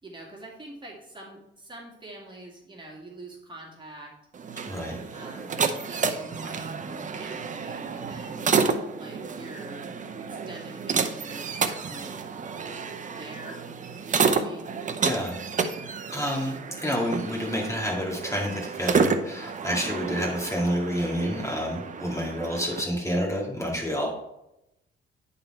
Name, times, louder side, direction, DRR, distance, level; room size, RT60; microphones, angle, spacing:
voice 1, 0.0-4.1 5.1-8.6 8.9-9.9 10.3-12.2 13.1-13.6 14.0-14.7, right 1 dB, 25° right, -2 dB, 2.2 m, -45 dB
sound 1, 4.3-22.8, right 5 dB, 40° right, 0.7 m, -30 dB
voice 2, 4.7-5.0 15.0-15.7 16.1-24.1, equal, 15° left, -1 dB, 2.3 m, -29 dB
10.0 x 4.1 x 4.4 m, 0.85 s
cardioid pair, 90°, 20 cm